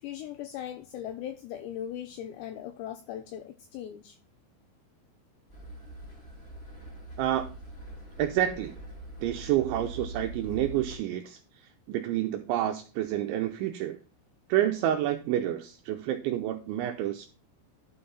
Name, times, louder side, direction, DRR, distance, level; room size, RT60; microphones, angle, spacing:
voice 1, 0.0-4.2, left 10 dB, 85° left, 9 dB, 2.5 m, -39 dB
sound 1, 5.5-10.9, right 1 dB, 15° left, 3.5 m, -43 dB
voice 2, 8.2-8.7 9.2-14.0 14.5-17.3, right 12 dB, 80° right, 5 dB, 2.9 m, -29 dB
11.5 x 5.7 x 4.0 m, 0.36 s
omnidirectional pair, 5.8 m